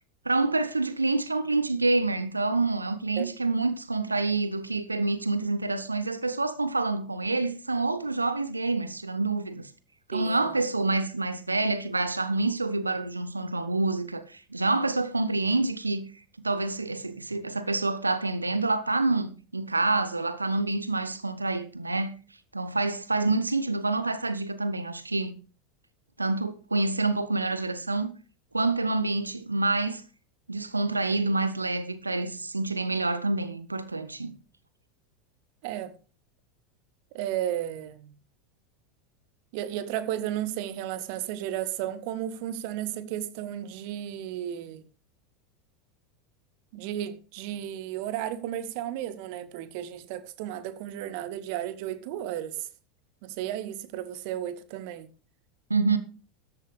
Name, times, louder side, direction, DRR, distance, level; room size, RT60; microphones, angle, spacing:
voice 1, 0.2-9.7 10.1-16.1 16.4-22.2 22.5-25.3 26.2-28.1 28.5-30.0 30.5-34.3 55.7-56.0, right 3 dB, 85° right, 0.9 m, -27 dB
voice 2, 10.1-10.5 35.6-35.9 37.1-38.1 39.5-44.8 46.7-52.7 53.2-55.1, right 11 dB, 50° right, 1.4 m, -33 dB
14.0 x 11.0 x 3.3 m
figure-of-eight pair, 80°, 0 cm